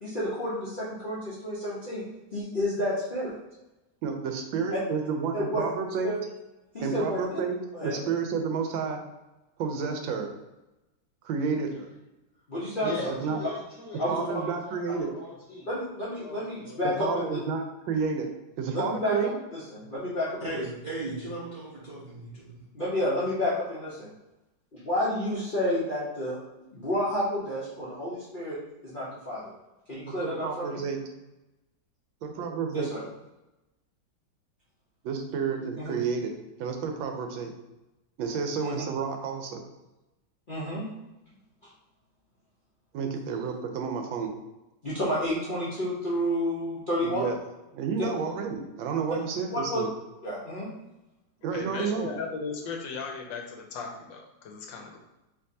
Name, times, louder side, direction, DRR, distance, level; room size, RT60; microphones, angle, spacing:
voice 1, 0.0-2.0 2.3-3.4 5.3-5.6 6.0-6.2 6.7-7.2 7.7-8.0 12.5-13.0 14.0-14.4 15.7-17.2 18.7-19.1 19.5-20.3 22.7-24.1 24.7-26.4 26.7-29.4 29.9-30.8 32.7-33.0 35.8-35.9 38.6-38.8 40.5-40.9 44.8-47.2 48.0-48.1 49.5-49.8 50.2-50.7, left 1 dB, 45° left, -9 dB, 0.6 m, -30 dB
voice 2, 4.0-6.1 6.8-7.6 7.8-9.0 9.6-10.3 11.2-11.9 13.1-13.4 14.1-15.1 17.0-18.3 18.6-19.4 29.9-31.0 32.2-32.9 35.0-36.3 36.6-37.5 38.2-39.6 42.9-44.3 47.0-47.4 47.7-49.9 51.4-52.1, right 5 dB, 80° right, 4 dB, 1.3 m, -30 dB
voice 3, 12.8-15.7 16.2-16.8, left 3 dB, 20° right, -7 dB, 1.4 m, -40 dB
voice 4, 20.4-22.7, right 2 dB, 60° right, -8 dB, 0.4 m, -37 dB
voice 5, 51.5-55.0, left 5 dB, 75° left, 2 dB, 1.3 m, -37 dB
4.6 x 3.1 x 2.7 m, 0.99 s
omnidirectional pair, 2.1 m